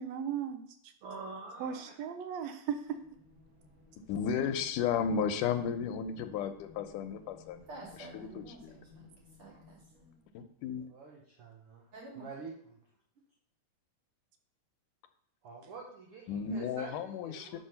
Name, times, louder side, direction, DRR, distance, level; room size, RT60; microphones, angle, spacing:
voice 1, 0.0-0.9 1.6-3.0, right 8 dB, 80° right, 8 dB, 1.5 m, -37 dB
voice 2, 1.0-1.9 8.0-8.4 10.9-11.9 12.1-12.8 15.4-17.6, right 4 dB, 60° right, -1 dB, 1.7 m, -47 dB
sound 1, 2.8-10.5, left 5 dB, 20° right, 1.5 m, -58 dB
voice 3, 4.1-8.8 10.3-10.9 16.3-17.6, left 7 dB, 85° left, 8 dB, 2.2 m, -34 dB
voice 4, 7.7-9.1 9.4-10.1 11.9-12.2, right 2 dB, 45° right, -3 dB, 3.0 m, -49 dB
6.2 x 5.4 x 5.7 m, 0.64 s
omnidirectional pair, 3.7 m